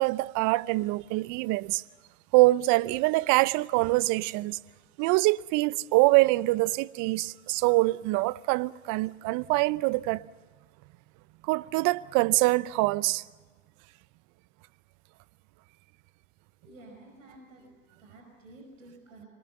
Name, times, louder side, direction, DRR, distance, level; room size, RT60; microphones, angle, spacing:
voice 1, 0.0-1.8 2.3-4.6 5.0-10.2 11.5-13.2, right 21 dB, 50° right, 0.7 m, -24 dB
voice 2, 16.6-19.3, right 2 dB, 90° right, 5.4 m, -51 dB
26.5 x 19.5 x 8.0 m
hypercardioid pair, 90°, 38 cm